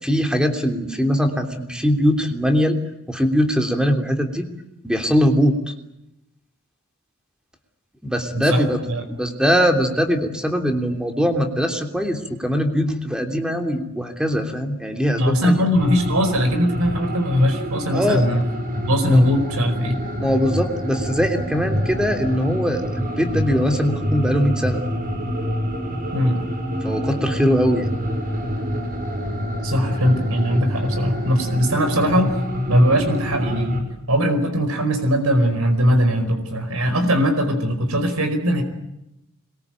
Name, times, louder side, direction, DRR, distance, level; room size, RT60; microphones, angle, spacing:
voice 1, 0.0-2.8 3.1-4.5 4.8-5.7 8.0-8.8 9.1-15.6 17.9-18.2 19.1-19.3 20.2-24.8 26.8-27.9, equal, 5° right, 4 dB, 3.1 m, -21 dB
voice 2, 15.2-18.4 18.9-20.0 26.1-26.4 29.6-32.3 32.7-33.7 34.1-38.6, equal, 80° right, 7 dB, 4.9 m, -20 dB
sound 1, 15.8-33.8, equal, 45° right, 5.6 m, -26 dB
26.0 x 22.5 x 9.1 m, 0.89 s
head